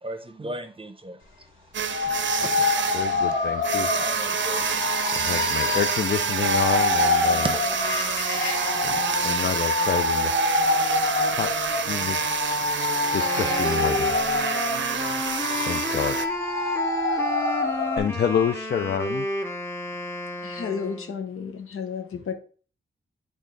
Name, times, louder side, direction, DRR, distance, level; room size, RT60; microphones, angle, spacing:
voice 1, 0.0-1.2 2.4-2.7 3.9-4.7 7.4-7.6, right 2 dB, 25° right, 0.7 m, -34 dB
sound 1, 1.7-16.3, right 7 dB, 60° right, 0.5 m, -28 dB
sound 2, 1.9-18.0, left 3 dB, 70° left, 1.7 m, -26 dB
voice 2, 2.9-3.9 5.1-7.5 8.8-10.5 11.4-12.2 13.1-14.2 15.7-16.4 18.0-19.3, left 8 dB, 50° left, 0.4 m, -28 dB
Wind instrument woodwind instrument, 13.0-21.2, left 1 dB, 10° left, 0.8 m, -32 dB
voice 3, 20.4-22.3, left 6 dB, 90° left, 1.0 m, -32 dB
8.3 x 3.6 x 3.9 m
wide cardioid pair, 100°, 21 cm